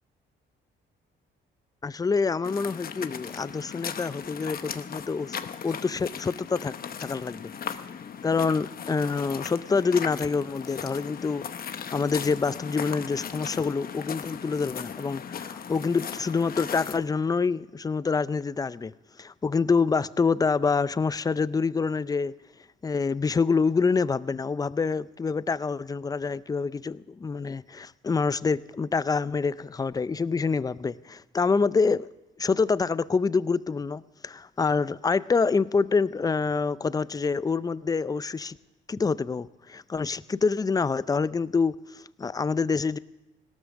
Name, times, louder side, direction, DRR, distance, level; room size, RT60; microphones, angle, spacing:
voice 1, 1.8-5.4 5.6-6.7 7.0-7.5 8.2-18.9 19.2-22.3 22.8-32.1 32.4-38.6 38.9-43.0, left 4 dB, 20° left, 0.4 m, -26 dB
sound 1, 2.4-17.0, left 7 dB, 50° left, 0.9 m, -37 dB
17.5 x 12.5 x 6.4 m
cardioid pair, 90°, 20 cm